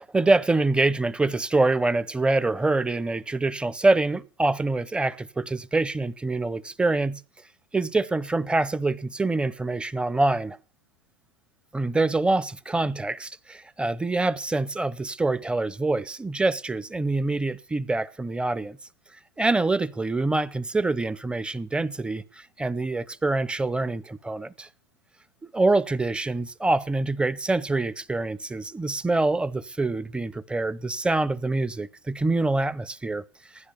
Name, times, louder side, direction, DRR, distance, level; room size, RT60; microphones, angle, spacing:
voice 1, 0.0-7.2 7.7-10.6 11.7-18.8 19.4-24.7 25.5-33.2, right 2 dB, 10° right, 0.7 m, -25 dB
16.0 x 10.5 x 6.7 m
hypercardioid pair, 100°, 12 cm